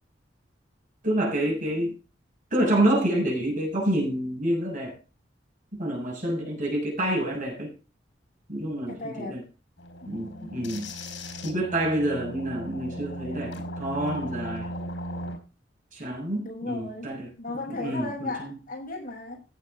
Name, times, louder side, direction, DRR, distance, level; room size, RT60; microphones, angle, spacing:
voice 1, 1.0-1.9 2.5-4.9 5.7-7.7 8.5-9.4 10.1-10.9 11.4-14.7 15.9-17.3 17.7-18.5, right 1 dB, 45° right, 7.2 m, -27 dB
voice 2, 8.9-9.4 10.0-10.7 16.4-17.1 17.4-19.4, left 2 dB, 50° left, 7.4 m, -36 dB
sound 1, 9.8-15.4, equal, 80° left, 5.0 m, -37 dB
16.0 x 9.4 x 3.7 m
head